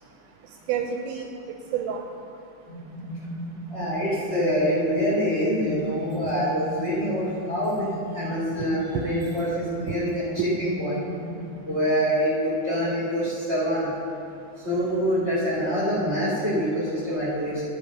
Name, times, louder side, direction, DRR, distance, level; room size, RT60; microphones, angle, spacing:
voice 1, 0.7-2.1 6.2-6.4 8.6-9.1 9.9-10.0, right 8 dB, 85° right, 3 dB, 2.8 m, -30 dB
sound 1, 2.7-11.6, equal, 65° right, 0.9 m, -37 dB
voice 2, 3.7-10.2 10.6-11.0 11.6-13.9 14.6-17.6, equal, 25° right, -10 dB, 1.5 m, -25 dB
11.5 x 6.2 x 5.4 m, 2.6 s
omnidirectional pair, 5.3 m